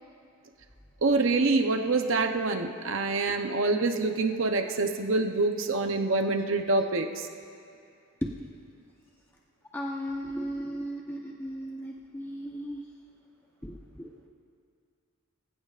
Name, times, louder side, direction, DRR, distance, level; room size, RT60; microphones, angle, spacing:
voice 1, 1.0-7.3, right 3 dB, 60° right, 5 dB, 0.8 m, -26 dB
voice 2, 9.7-12.8 13.6-14.1, equal, 10° left, -2 dB, 0.9 m, -36 dB
24.0 x 16.0 x 2.5 m, 2.5 s
head